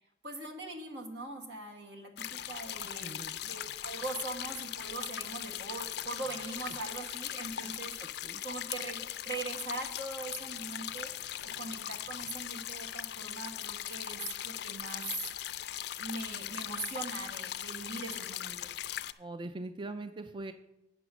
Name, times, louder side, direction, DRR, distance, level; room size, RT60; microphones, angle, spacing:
voice 1, 0.2-3.2 3.4-8.1 8.4-11.1 11.6-15.0 16.0-18.7, right 3 dB, 75° right, 2 dB, 1.6 m, -41 dB
sound 1, 2.2-19.1, left 11 dB, 60° left, 0.4 m, -39 dB
voice 2, 2.8-3.4 6.3-6.5 7.5-8.4 19.2-20.5, right 2 dB, 25° right, 9 dB, 0.3 m, -43 dB
9.0 x 6.0 x 6.2 m, 0.90 s
head